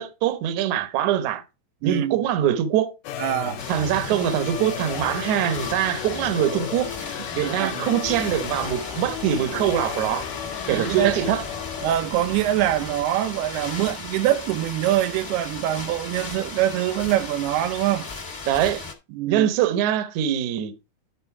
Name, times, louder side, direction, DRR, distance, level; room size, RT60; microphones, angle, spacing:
voice 1, 0.0-1.4 1.8-2.9 3.7-6.9 7.3-10.3 10.7-11.4 18.5-18.8 19.3-20.7, right 10 dB, 70° right, 1.9 m, -23 dB
voice 2, 1.8-2.3 3.2-3.6 4.1-4.2 7.2-7.8 10.7-11.2 11.8-18.1 19.1-19.5, right 13 dB, 85° right, 2.7 m, -24 dB
sound 1, 3.0-12.0, left 10 dB, 75° left, 2.1 m, -34 dB
sound 2, 3.6-18.9, left 4 dB, 35° left, 1.1 m, -36 dB
12.0 x 4.0 x 4.7 m
omnidirectional pair, 4.5 m